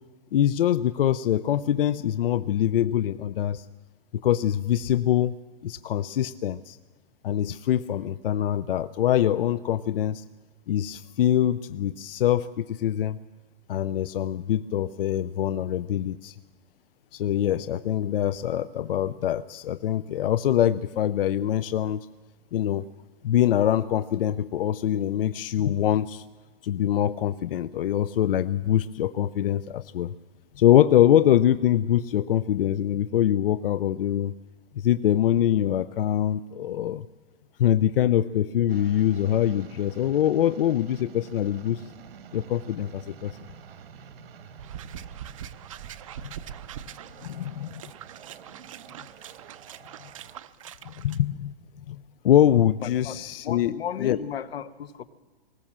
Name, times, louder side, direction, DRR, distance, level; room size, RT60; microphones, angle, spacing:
voice 1, 0.3-3.7 4.2-5.4 5.6-6.8 7.2-10.2 10.7-13.2 13.7-16.4 17.1-22.1 22.5-22.8 23.2-26.2 26.6-30.1 30.6-34.3 34.7-37.1 37.6-41.9 42.3-43.4 46.2-46.3 47.2-47.8 50.8-51.5 51.9-53.7 54.0-54.2, left 11 dB, 70° left, 15 dB, 0.6 m, -24 dB
sound 1, 38.7-50.4, right 7 dB, 80° right, 1.5 m, -48 dB
sound 2, 44.6-51.2, right 9 dB, 35° right, 0.5 m, -43 dB
voice 2, 52.8-53.2 53.4-55.0, left 9 dB, 90° left, 13 dB, 1.2 m, -34 dB
19.5 x 18.5 x 7.4 m, 1.3 s
hypercardioid pair, 175°, 30 cm